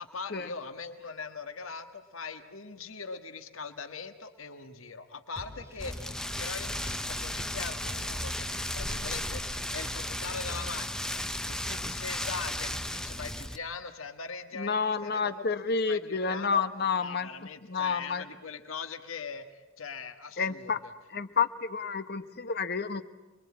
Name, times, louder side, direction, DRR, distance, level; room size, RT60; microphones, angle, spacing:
voice 1, 0.0-8.5 8.7-16.6 16.9-20.9, left 5 dB, 75° left, 8 dB, 1.6 m, -41 dB
sound 1, 5.4-10.7, equal, 15° right, 2.8 m, -46 dB
Rain, 5.8-13.6, left 1 dB, 5° left, 0.9 m, -35 dB
voice 2, 14.5-17.3 17.7-18.2 20.4-20.8 21.1-23.0, left 5 dB, 50° left, 10 dB, 1.3 m, -29 dB
28.0 x 22.5 x 8.7 m, 1.1 s
head